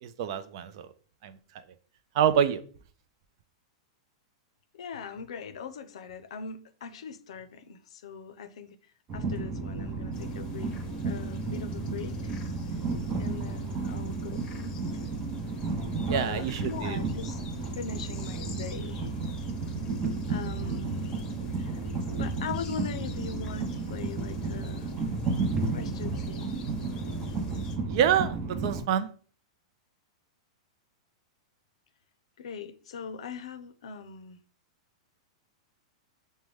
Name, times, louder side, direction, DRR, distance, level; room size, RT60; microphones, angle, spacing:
voice 1, 0.0-0.9 1.2-1.4 2.1-2.6 16.1-17.0 27.9-29.1, right 9 dB, 55° right, 0.5 m, -26 dB
voice 2, 4.7-8.8 9.1-10.7 11.0-12.4 13.2-15.1 16.1-19.1 20.3-21.2 21.6-21.8 22.2-24.9 25.7-26.7 32.4-34.4, left 6 dB, 75° left, 0.5 m, -41 dB
Train, 9.1-28.8, right 3 dB, 25° right, 0.7 m, -32 dB
sound 1, 10.1-27.8, left 5 dB, 30° left, 0.7 m, -50 dB
6.0 x 2.2 x 3.3 m
hypercardioid pair, 130°, 3 cm